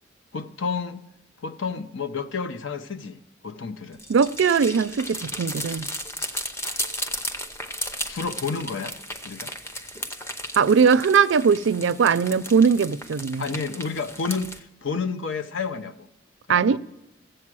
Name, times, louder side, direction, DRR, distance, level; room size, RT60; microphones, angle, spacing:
voice 1, 0.3-1.0 1.4-4.0 8.1-8.9 9.2-9.5 13.4-16.1 16.5-16.8, left 5 dB, 75° left, 0.7 m, -30 dB
sound 1, 3.9-14.6, equal, 15° left, 0.7 m, -35 dB
voice 2, 4.1-5.9 10.6-13.5 16.5-16.8, right 6 dB, 70° right, 0.4 m, -20 dB
14.0 x 7.9 x 6.1 m
head